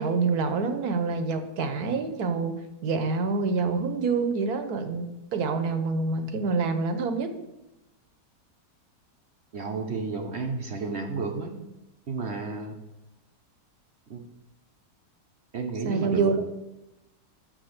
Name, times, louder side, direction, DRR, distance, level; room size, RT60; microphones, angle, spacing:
voice 1, 0.0-7.3 15.8-16.4, right 4 dB, 65° right, 8 dB, 1.4 m, -27 dB
voice 2, 9.5-11.6 12.1-12.7 14.1-14.2 15.5-16.3, right 4 dB, 45° right, 3 dB, 1.0 m, -32 dB
6.6 x 6.4 x 6.6 m, 0.94 s
omnidirectional pair, 1.8 m